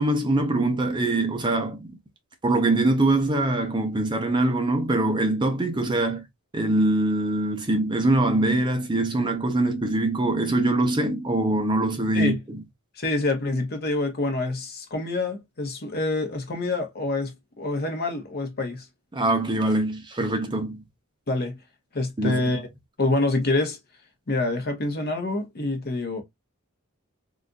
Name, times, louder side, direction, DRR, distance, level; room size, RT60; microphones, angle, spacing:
voice 1, 0.0-2.0 2.4-6.2 6.5-12.6 19.1-20.8 22.2-22.4, right 2 dB, 20° right, 0.6 m, -23 dB
voice 2, 13.0-18.8 21.3-21.6 21.9-22.7 23.0-23.8 24.3-26.2, left 2 dB, 45° left, 0.9 m, -26 dB
3.9 x 2.5 x 2.3 m
head